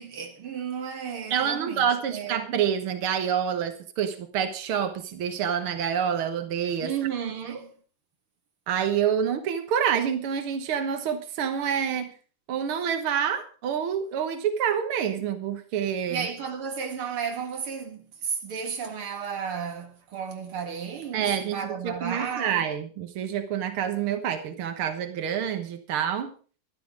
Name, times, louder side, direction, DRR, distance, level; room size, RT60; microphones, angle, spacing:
voice 1, 0.0-2.7 6.8-7.7 16.1-22.7, right 7 dB, 45° right, 2.2 m, -33 dB
voice 2, 1.3-6.9 8.7-12.1 12.5-16.3 21.1-26.3, right 8 dB, 70° right, 1.2 m, -27 dB
13.0 x 12.0 x 5.0 m
omnidirectional pair, 4.1 m